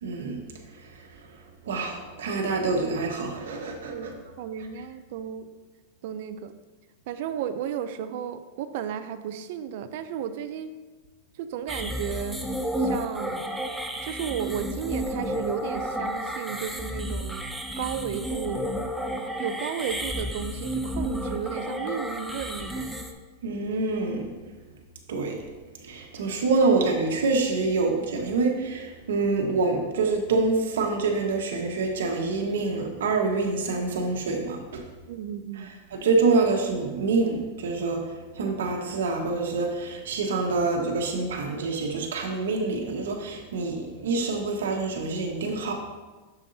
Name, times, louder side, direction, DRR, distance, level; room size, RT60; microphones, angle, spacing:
voice 1, 0.0-0.4 0.9-1.0 1.7-4.1 23.4-24.3 25.1-25.5 25.8-34.8 35.6-38.0 38.3-45.7, right 3 dB, 85° right, 2 dB, 1.3 m, -26 dB
voice 2, 3.9-5.5 6.0-6.5 7.1-10.7 11.4-12.4 12.8-13.4 14.0-17.5 17.8-18.7 19.4-22.9 35.1-35.7, right 9 dB, 60° right, 10 dB, 0.5 m, -33 dB
sound 1, 11.7-23.1, equal, ahead, 0.6 m, -31 dB
7.2 x 6.9 x 2.8 m, 1.2 s
supercardioid pair, 135°, 0 cm